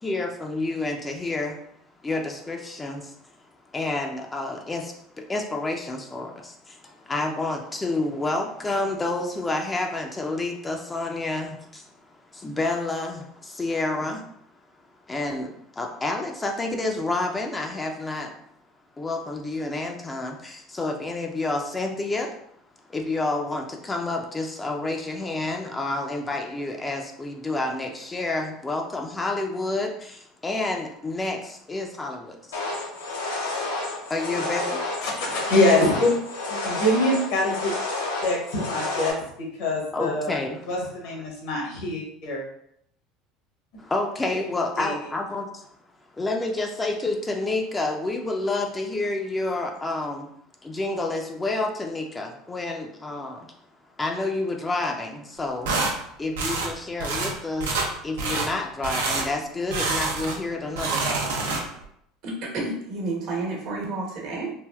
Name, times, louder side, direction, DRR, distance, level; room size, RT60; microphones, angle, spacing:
voice 1, 0.0-1.6 2.0-3.2 3.7-11.9 12.3-14.3 15.1-18.3 19.0-22.3 22.9-32.8 34.1-34.8 36.6-36.8 39.9-40.7 41.0-41.3 43.8-45.7 46.1-50.3 50.6-53.5 54.0-55.7 56.2-61.3, left 2 dB, 20° left, 2 dB, 0.4 m, -29 dB
sound 1, 32.5-39.1, left 2 dB, 90° left, 0.7 m, -30 dB
voice 2, 35.0-36.2 36.5-37.7 38.2-39.2 39.6-40.3 40.7-42.4 44.8-44.9, left 1 dB, 70° left, -2 dB, 1.1 m, -24 dB
sound 2, 55.6-55.9 56.4-56.7 57.0-57.3 57.6-57.9 58.2-58.5 58.8-59.3 59.7-60.4 60.7-61.8, right 3 dB, 85° right, 0.6 m, -26 dB
voice 3, 62.2-64.5, right 2 dB, 65° right, -2 dB, 1.1 m, -30 dB
3.3 x 2.4 x 2.3 m, 0.71 s
hypercardioid pair, 80°, 0 cm